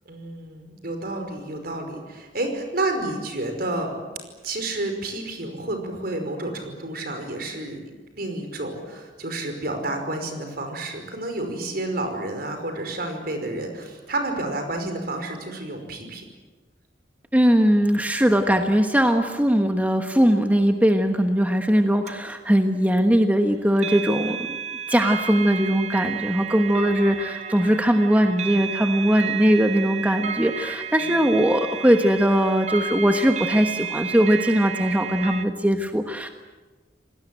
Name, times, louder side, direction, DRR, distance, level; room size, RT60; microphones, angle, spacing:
voice 1, 0.1-4.0 4.4-7.8 8.1-16.2, right 2 dB, 60° right, 5 dB, 5.3 m, -30 dB
voice 2, 17.3-24.4 24.9-36.3, equal, 10° right, 5 dB, 1.3 m, -20 dB
sound 1, 22.1-22.2 23.8-35.4, right 7 dB, 40° right, 1.2 m, -32 dB
28.0 x 19.5 x 9.2 m, 1.3 s
head